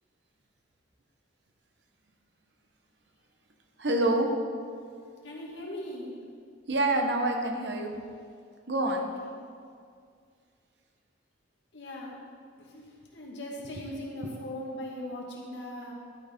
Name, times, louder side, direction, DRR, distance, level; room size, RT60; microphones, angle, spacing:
voice 1, 3.8-4.3 6.7-7.9 8.7-9.0, right 2 dB, 60° right, 3 dB, 1.1 m, -26 dB
voice 2, 5.2-6.2 8.9-9.0 11.7-12.2 12.6-12.9 13.1-15.9, left 1 dB, 65° left, -3 dB, 2.1 m, -39 dB
12.0 x 6.7 x 5.3 m, 2.2 s
head